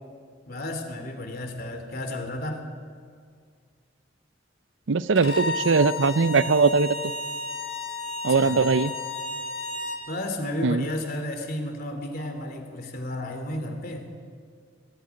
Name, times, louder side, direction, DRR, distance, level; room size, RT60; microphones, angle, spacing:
voice 1, 0.5-2.7 8.3-8.6 10.1-14.1, left 1 dB, 50° left, 5 dB, 3.0 m, -32 dB
voice 2, 4.9-6.9 8.2-8.9 10.6-10.8, right 4 dB, 70° right, 15 dB, 0.6 m, -20 dB
Bowed string instrument, 5.1-10.0, left 2 dB, 85° left, 4.7 m, -32 dB
22.0 x 14.5 x 9.9 m, 2.1 s
head